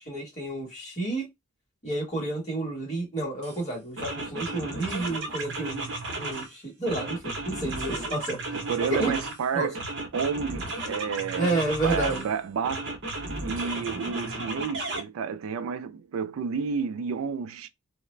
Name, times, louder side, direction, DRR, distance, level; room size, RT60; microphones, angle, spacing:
voice 1, 0.1-1.3 1.8-5.9 6.2-8.4 8.9-9.1 9.5-9.7 11.4-12.2, right 2 dB, 30° left, 1.2 m, -30 dB
sound 1, 3.4-3.6 4.0-6.5 6.8-9.4 9.7-12.3 12.6-15.0, right 2 dB, 55° right, 0.8 m, -34 dB
sound 2, 7.2-8.2 8.9-9.3 10.3-10.7 11.6-12.3 13.0-13.7, right 1 dB, 60° left, 1.1 m, -41 dB
voice 2, 8.5-9.8 10.1-11.5 11.8-17.7, right 6 dB, 70° right, 0.3 m, -31 dB
2.3 x 2.1 x 3.1 m
head